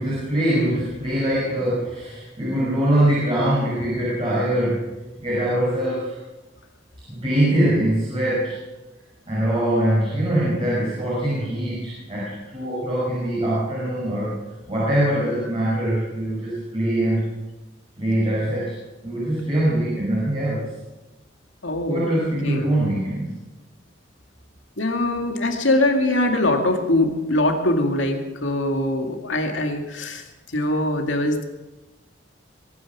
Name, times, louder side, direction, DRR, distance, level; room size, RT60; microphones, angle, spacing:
voice 1, 0.0-4.9 5.2-6.2 7.1-8.5 9.2-14.4 14.7-17.2 18.0-18.7 19.0-20.7 21.9-23.3, right 1 dB, 30° right, -8 dB, 6.3 m, -23 dB
voice 2, 21.6-22.1 22.4-22.7 24.8-30.2 30.5-31.4, left 1 dB, 80° left, 3 dB, 2.2 m, -22 dB
23.5 x 9.8 x 6.2 m, 1.1 s
head